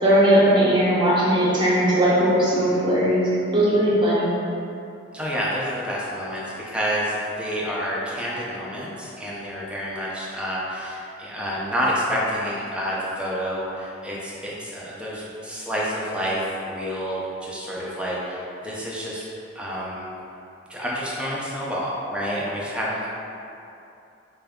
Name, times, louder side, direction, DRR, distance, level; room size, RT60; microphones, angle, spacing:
voice 1, 0.0-3.2 3.5-4.3, equal, 25° right, -9 dB, 0.9 m, -18 dB
voice 2, 5.1-19.2 19.5-20.1 20.7-23.1, equal, 5° right, -6 dB, 0.5 m, -28 dB
3.9 x 2.3 x 3.5 m, 2.7 s
head